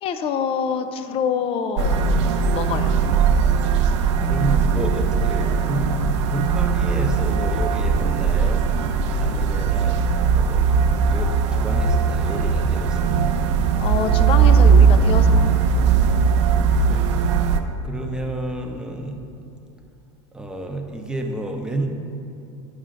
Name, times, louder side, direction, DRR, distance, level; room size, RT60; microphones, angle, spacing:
voice 1, 0.0-2.0 2.5-3.0 13.8-15.5, left 7 dB, 40° left, 9 dB, 0.4 m, -25 dB
sound 1, 1.8-17.6, right 5 dB, 80° right, 0.5 m, -19 dB
voice 2, 4.2-5.9 6.3-13.5 16.5-17.0 17.8-19.2 20.3-21.9, right 2 dB, 5° right, 2 dB, 0.7 m, -31 dB
10.0 x 5.5 x 2.5 m, 2.6 s
supercardioid pair, 110°, 15 cm